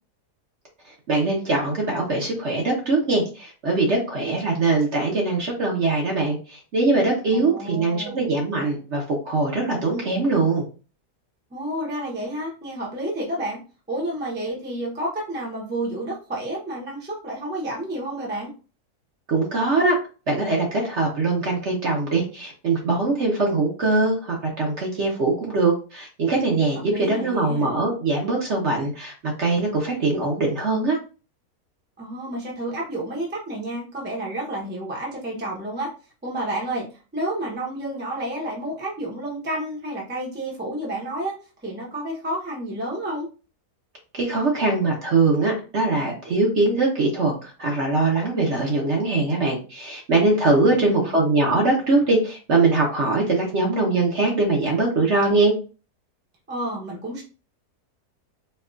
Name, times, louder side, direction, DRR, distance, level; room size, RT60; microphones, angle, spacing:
voice 1, 1.1-10.6 19.3-20.0 20.3-31.0 44.1-55.5, right 3 dB, 50° right, -1 dB, 1.0 m, -22 dB
voice 2, 7.3-8.3 11.5-13.6 13.9-18.5 26.9-27.7 32.0-35.9 36.2-41.3 41.6-43.3 50.5-51.2 56.5-57.2, right 1 dB, 10° right, -3 dB, 0.6 m, -30 dB
4.4 x 2.3 x 2.4 m, 0.35 s
omnidirectional pair, 1.7 m